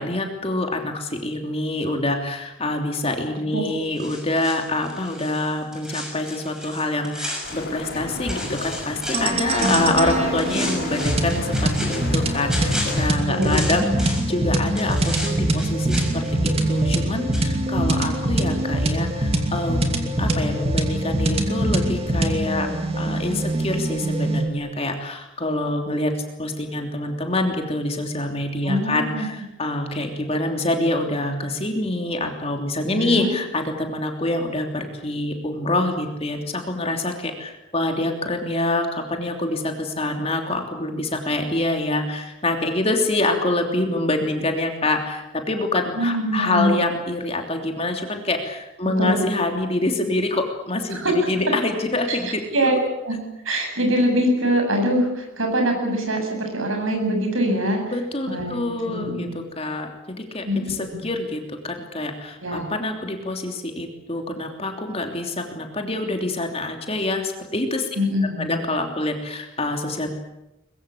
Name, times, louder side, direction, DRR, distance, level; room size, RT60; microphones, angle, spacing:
voice 1, 0.0-22.7 22.9-52.4 57.9-67.9 68.4-70.1, left 2 dB, 30° left, 4 dB, 3.1 m, -26 dB
sound 1, 4.0-8.0 8.3-10.0 10.4-14.4 14.8-17.1 17.3-17.5, left 1 dB, 5° right, 6.2 m, -34 dB
sound 2, 7.4-13.1, left 2 dB, 50° left, 3.0 m, -33 dB
sound 3, 9.1-24.5, right 1 dB, 30° right, 2.7 m, -23 dB
voice 2, 9.6-9.9 13.4-13.5 28.6-29.3 32.9-33.3 46.0-46.7 49.0-49.2 50.9-51.1 52.1-52.2 52.5-52.8 53.0-53.1 53.4-57.8 58.3-59.3 60.4-61.0 62.4-62.7 68.0-68.6, equal, 70° right, 3 dB, 8.0 m, -23 dB
23.0 x 22.0 x 8.6 m, 0.91 s
head